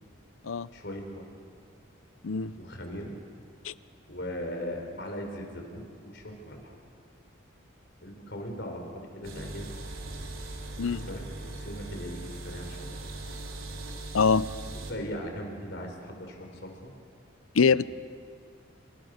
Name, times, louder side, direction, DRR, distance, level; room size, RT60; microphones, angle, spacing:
voice 1, 0.7-1.4 2.6-3.1 4.1-6.7 8.0-9.8 10.8-13.0 14.9-16.9 17.8-17.9, equal, 55° left, 3 dB, 4.7 m, -39 dB
sound 1, 9.2-14.9, right 2 dB, 80° right, 3.6 m, -40 dB
voice 2, 14.1-14.5 17.5-17.8, left 5 dB, 85° left, 17 dB, 0.7 m, -23 dB
29.0 x 25.0 x 6.6 m, 2.2 s
head